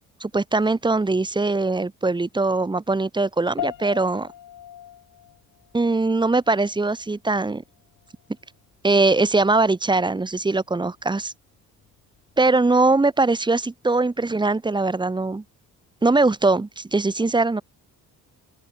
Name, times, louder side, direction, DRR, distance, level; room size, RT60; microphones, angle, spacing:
voice 1, 0.2-4.3 5.7-7.6 8.8-11.3 12.4-15.4 16.0-17.6, right 3 dB, 15° right, 0.8 m, -21 dB
sound 1, 3.6-13.2, left 11 dB, 65° left, 2.3 m, -42 dB
open air
cardioid pair, 90°, 35 cm